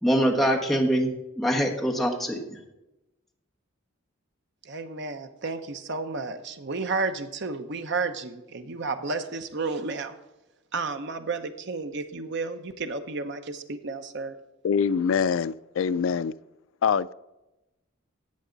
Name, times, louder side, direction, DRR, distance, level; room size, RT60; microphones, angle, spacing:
voice 1, 0.0-1.1 1.4-2.4, equal, ahead, -1 dB, 1.3 m, -23 dB
voice 2, 4.6-10.1 10.7-14.4, right 3 dB, 60° right, 8 dB, 0.8 m, -32 dB
voice 3, 14.6-16.3 16.8-17.1, left 6 dB, 70° left, 16 dB, 0.3 m, -24 dB
14.0 x 8.3 x 3.9 m, 0.98 s
head